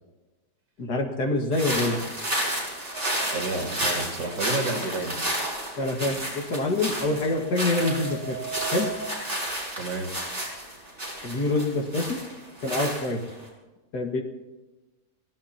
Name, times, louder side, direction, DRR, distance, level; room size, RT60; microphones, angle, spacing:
voice 1, 0.8-2.0 5.8-8.4 8.7-8.9 11.2-12.2 12.6-13.2 13.9-14.2, left 2 dB, 75° left, 2 dB, 2.4 m, -26 dB
sound 1, 1.5-13.4, right 1 dB, 30° right, 6.0 m, -31 dB
sound 2, 2.9-3.7 7.0-9.1, right 8 dB, 65° right, 5.4 m, -37 dB
voice 2, 3.3-5.2 9.8-10.1, right 3 dB, 85° right, 1 dB, 3.0 m, -30 dB
29.5 x 16.5 x 2.9 m, 1.1 s
omnidirectional pair, 1.8 m